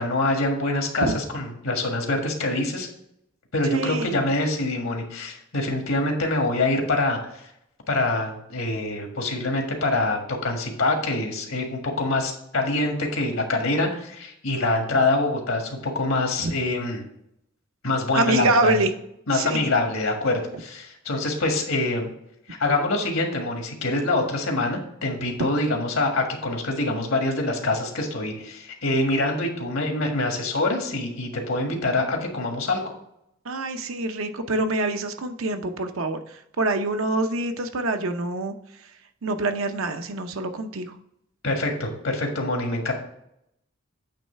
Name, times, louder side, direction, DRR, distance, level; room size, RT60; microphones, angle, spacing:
voice 1, 0.0-2.9 3.5-7.2 7.9-17.0 17.8-18.8 19.3-22.1 22.6-32.8 41.4-42.9, left 2 dB, 85° left, 2 dB, 1.7 m, -25 dB
voice 2, 3.7-4.2 16.4-16.5 18.1-18.9 19.3-19.6 33.4-38.5 39.2-40.9, right 2 dB, 90° right, 7 dB, 0.8 m, -25 dB
8.8 x 3.2 x 5.7 m, 0.77 s
head